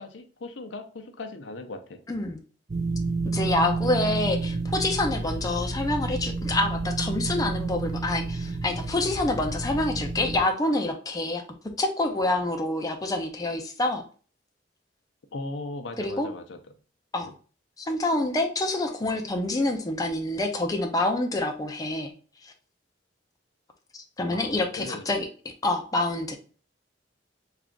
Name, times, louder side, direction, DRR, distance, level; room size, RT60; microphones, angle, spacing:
voice 1, 0.0-2.0 15.3-16.6 17.2-17.3 24.3-25.1, left 2 dB, 85° left, 5 dB, 0.6 m, -38 dB
voice 2, 2.1-2.4 3.2-11.4 11.8-14.0 16.0-16.3 17.1-17.3 17.8-22.1 22.4-22.5 23.9-25.3 25.6-26.4, left 2 dB, 20° left, 3 dB, 0.5 m, -27 dB
sound 1, 2.7-10.4, right 3 dB, 40° right, 0.5 m, -30 dB
3.4 x 2.4 x 3.6 m, 0.40 s
head